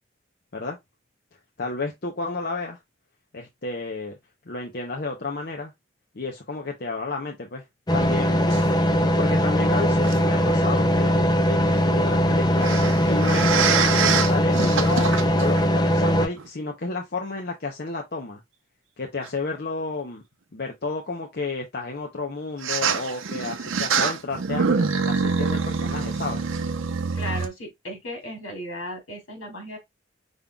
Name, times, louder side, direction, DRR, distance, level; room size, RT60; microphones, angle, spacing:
voice 1, 1.6-2.8 3.3-4.1 4.5-5.7 6.1-7.6 7.9-12.7 13.1-18.4 19.0-20.2 20.5-26.5, left 3 dB, 50° left, 0.7 m, -32 dB
sound 1, 7.9-16.3, equal, 20° left, 0.4 m, -20 dB
sound 2, 8.5-8.7 10.0-10.2 12.6-15.6 16.4-16.5 19.2-19.3 22.6-27.5, right 5 dB, 80° right, 0.6 m, -25 dB
voice 2, 27.1-29.8, equal, 80° left, 2.6 m, -35 dB
5.3 x 3.7 x 2.3 m
head